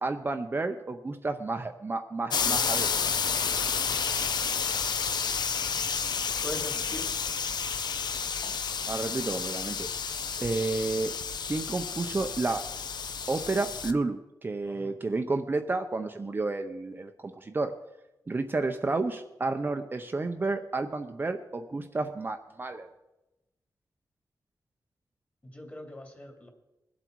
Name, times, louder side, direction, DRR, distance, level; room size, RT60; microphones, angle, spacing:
voice 1, 0.0-2.9 8.9-9.9 10.4-11.1 11.5-12.6 13.3-17.7 18.3-22.9, right 3 dB, 30° right, 5 dB, 0.6 m, -31 dB
sound 1, 2.3-13.9, left 6 dB, 75° left, 0.7 m, -30 dB
voice 2, 6.4-7.1 14.7-15.0 25.4-26.5, left 1 dB, 25° left, 2 dB, 2.7 m, -41 dB
21.5 x 8.0 x 4.6 m, 0.95 s
wide cardioid pair, 150°, 7 cm